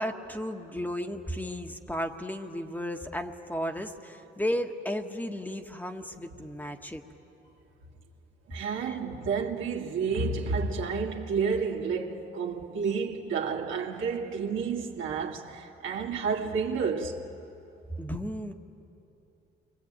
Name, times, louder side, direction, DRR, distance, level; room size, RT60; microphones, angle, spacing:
voice 1, 0.0-7.0 8.9-9.0 18.0-18.5, equal, 10° left, 1.5 m, -34 dB
voice 2, 8.5-17.2, right 5 dB, 80° right, 2.3 m, -30 dB
29.0 x 22.5 x 8.9 m
cardioid pair, 90°, 20 cm